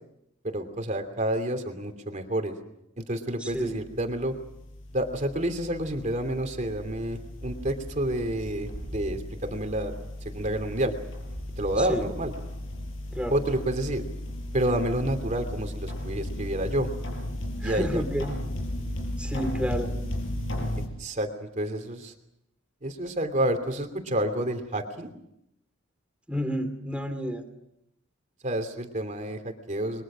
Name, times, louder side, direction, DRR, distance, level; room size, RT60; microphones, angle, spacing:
voice 1, 0.4-2.6 3.0-4.3 4.9-9.9 10.2-10.9 11.6-12.3 13.3-14.0 14.5-16.9 17.6-18.0 21.0-22.1 22.8-25.1 28.4-30.0, right 1 dB, 35° right, 7 dB, 2.9 m, -29 dB
voice 2, 3.4-3.7 11.8-12.1 13.1-13.4 17.6-18.3 19.2-19.9 26.3-27.5, equal, 5° right, 7 dB, 2.7 m, -30 dB
sound 1, 3.5-20.9, left 1 dB, 65° left, 6.7 m, -36 dB
29.5 x 22.5 x 6.3 m, 0.80 s
head